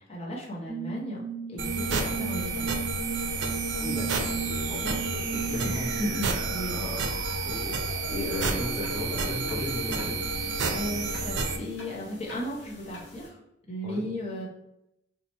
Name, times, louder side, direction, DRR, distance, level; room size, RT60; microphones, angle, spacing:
voice 1, 0.1-1.2 1.5-2.8 6.0-6.8 10.7-13.4 13.7-14.5, equal, 35° left, -3 dB, 0.8 m, -35 dB
sound 1, 0.7-7.7, right 5 dB, 50° right, 1.3 m, -36 dB
sound 2, 1.6-11.6, right 3 dB, 70° right, 0.5 m, -30 dB
voice 2, 3.7-10.2 13.8-14.0, left 1 dB, 10° left, -10 dB, 1.0 m, -37 dB
sound 3, 8.2-13.3, left 1 dB, 80° left, 1.2 m, -42 dB
2.9 x 2.4 x 4.1 m, 0.82 s
head